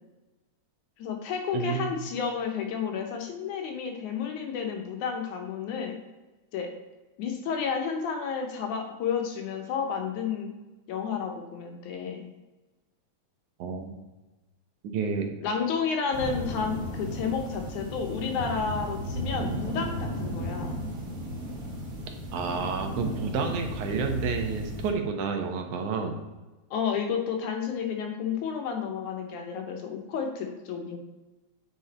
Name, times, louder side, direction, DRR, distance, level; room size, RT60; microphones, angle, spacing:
voice 1, 1.0-6.0 6.5-6.7 7.2-10.5 10.9-12.2 15.4-20.8 26.7-31.0, left 6 dB, 75° left, 3 dB, 2.4 m, -31 dB
voice 2, 1.5-2.0 13.6-14.0 14.8-15.3 22.3-26.2, right 5 dB, 75° right, 4 dB, 2.3 m, -30 dB
sound 1, 16.1-24.9, equal, 50° right, 0.8 m, -35 dB
8.1 x 5.2 x 4.2 m, 1.1 s
omnidirectional pair, 3.6 m